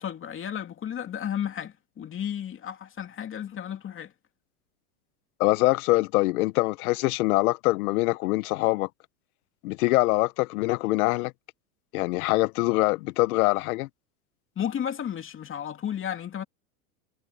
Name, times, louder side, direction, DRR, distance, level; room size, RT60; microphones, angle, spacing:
voice 1, 0.0-4.1 14.6-16.4, left 9 dB, 25° left, 2.7 m, -33 dB
voice 2, 5.4-8.9 9.6-11.3 11.9-13.9, left 20 dB, 70° left, 1.0 m, -24 dB
supercardioid pair, 125°, 45 cm